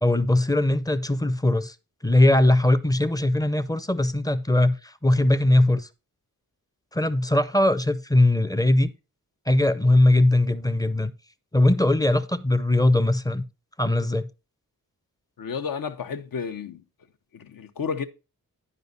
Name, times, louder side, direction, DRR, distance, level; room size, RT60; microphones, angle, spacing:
voice 1, 0.0-1.8 2.0-5.9 6.9-8.9 9.5-11.1 11.5-13.4 13.8-14.3, left 1 dB, 10° left, 0.5 m, -20 dB
voice 2, 15.4-16.8 17.3-18.1, left 6 dB, 75° left, 0.9 m, -31 dB
11.0 x 5.2 x 3.9 m
wide cardioid pair, 175°, 35 cm